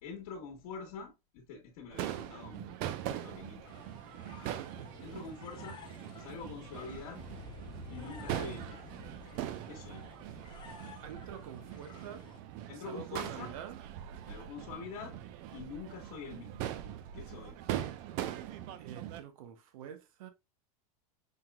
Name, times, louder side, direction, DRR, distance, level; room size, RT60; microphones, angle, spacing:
voice 1, 0.0-2.8 3.0-3.7 4.4-4.6 5.0-5.8 6.2-7.3 7.9-9.0 9.7-10.1 12.7-13.5 14.2-15.2 15.5-16.7 17.1-17.6, left 5 dB, 60° left, 1.4 m, -45 dB
Crowd / Fireworks, 1.9-19.2, right 11 dB, 45° right, 0.5 m, -42 dB
sound 1, 3.7-12.4, left 4 dB, 25° left, 0.7 m, -51 dB
voice 2, 4.4-4.9 11.0-12.3 12.9-13.8 18.8-20.3, right 8 dB, 70° right, 0.8 m, -47 dB
5.7 x 2.9 x 2.2 m
supercardioid pair, 140°, 19 cm